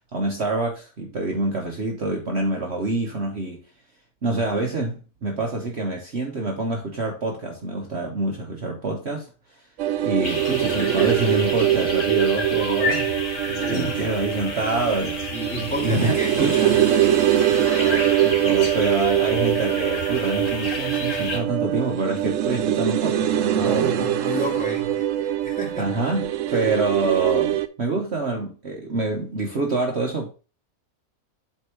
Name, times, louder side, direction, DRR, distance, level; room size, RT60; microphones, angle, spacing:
voice 1, 0.1-3.6 4.2-9.3 10.0-13.1 13.5-15.2 15.8-16.6 17.4-24.1 25.8-30.3, right 2 dB, 50° right, 1.3 m, -26 dB
sound 1, 9.8-27.7, right 12 dB, 65° right, 0.9 m, -23 dB
sound 2, 10.2-21.4, left 3 dB, 55° left, 2.0 m, -31 dB
voice 2, 13.6-14.1 15.3-16.9 23.6-26.0 26.5-26.6, equal, 5° left, 2.4 m, -31 dB
8.1 x 3.6 x 4.5 m
omnidirectional pair, 1.6 m